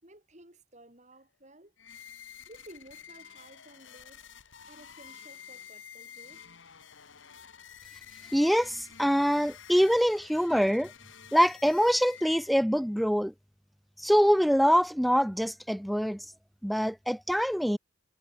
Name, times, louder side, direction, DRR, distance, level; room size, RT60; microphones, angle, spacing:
voice 1, 0.0-1.7 2.5-4.2 4.7-6.5, right 1 dB, 35° right, 5.2 m, -54 dB
sound 1, 1.8-12.8, left 8 dB, 70° left, 1.8 m, -50 dB
voice 2, 8.3-10.9 11.3-13.3 14.0-16.3 16.6-17.8, equal, ahead, 0.3 m, -24 dB
head